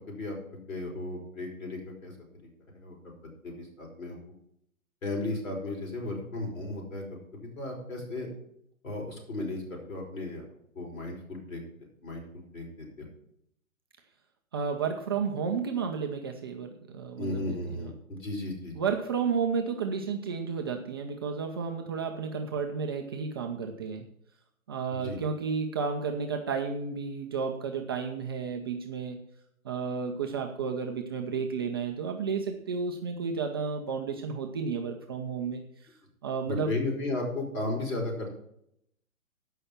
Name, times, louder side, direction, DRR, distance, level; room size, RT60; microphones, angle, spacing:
voice 1, 0.0-3.1 3.4-4.2 5.0-8.3 8.8-10.5 10.8-11.6 12.0-13.1 17.2-18.9 24.9-25.2 36.5-38.3, left 2 dB, 65° left, 1 dB, 5.2 m, -35 dB
voice 2, 14.5-17.9 18.8-24.1 24.7-29.2 29.6-35.6 36.2-36.7, right 5 dB, 20° right, 2 dB, 0.5 m, -32 dB
14.5 x 5.6 x 5.8 m, 0.74 s
figure-of-eight pair, 130°, 42 cm